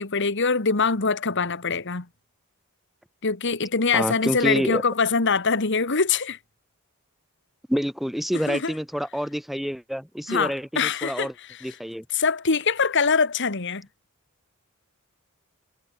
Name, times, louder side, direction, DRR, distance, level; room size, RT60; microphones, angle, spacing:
voice 1, 0.0-2.1 3.2-6.4 8.5-8.7 10.3-11.7 12.1-13.9, left 5 dB, 60° left, 1.8 m, -23 dB
voice 2, 3.9-4.8 7.7-11.3 11.6-12.0, equal, ahead, 1.5 m, -27 dB
head